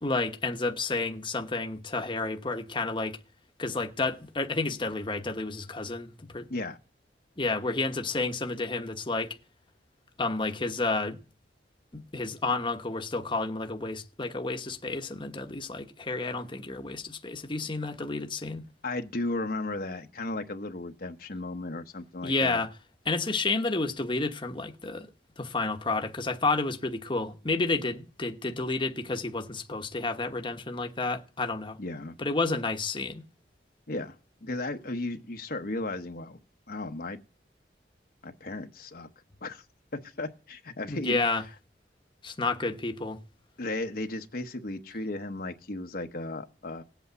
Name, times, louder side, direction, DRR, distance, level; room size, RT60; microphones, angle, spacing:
voice 1, 0.0-3.2 3.6-6.4 7.4-9.4 10.2-11.2 11.9-18.7 22.2-22.7 23.1-25.1 25.4-31.8 32.2-33.2 40.9-41.4 42.2-43.2, left 3 dB, 25° left, 1.1 m, -30 dB
voice 2, 18.8-22.6 31.8-32.1 33.9-36.4 36.7-37.2 38.2-39.1 39.4-39.6 39.9-41.2 43.6-46.8, left 2 dB, 55° left, 1.0 m, -35 dB
18.0 x 8.3 x 8.0 m
head